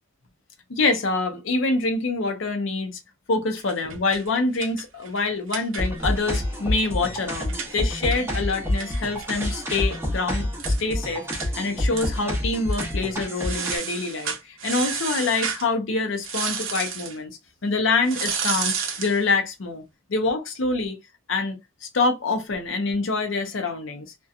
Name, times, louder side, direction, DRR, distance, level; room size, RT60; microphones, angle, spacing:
voice 1, 0.7-3.0 3.3-10.5 10.8-19.8 20.1-21.0 21.3-24.1, left 3 dB, 65° left, 0.6 m, -26 dB
sound 1, 3.6-6.2 6.5-6.6 6.9-10.0 10.3-10.4 10.6-10.8 11.3-11.5 11.9-12.4 12.7-12.9 13.4-15.7 16.2-17.2 18.0-19.2, right 6 dB, 70° right, 0.6 m, -32 dB
sound 2, 5.8-13.8, left 1 dB, 10° right, 0.9 m, -28 dB
2.6 x 2.2 x 2.4 m
head